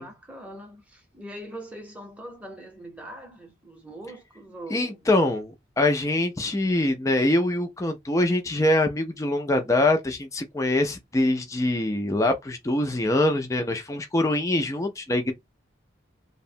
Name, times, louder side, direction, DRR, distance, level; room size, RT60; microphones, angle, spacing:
voice 1, 0.0-5.2, right 1 dB, 5° right, 0.7 m, -42 dB
voice 2, 4.7-15.3, left 1 dB, 15° left, 0.4 m, -24 dB
2.7 x 2.1 x 2.7 m
head